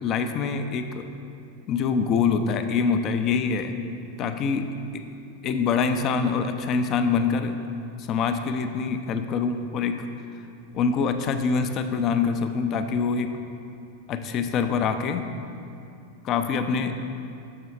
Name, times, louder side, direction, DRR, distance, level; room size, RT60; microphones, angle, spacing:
voice 1, 0.0-1.1 1.7-3.7 4.2-5.0 5.4-7.6 8.1-10.1 10.7-13.3 14.1-15.2 16.2-17.0, left 5 dB, 35° left, 8 dB, 0.4 m, -25 dB
6.6 x 6.2 x 4.3 m, 2.6 s
figure-of-eight pair, 90°, 0 cm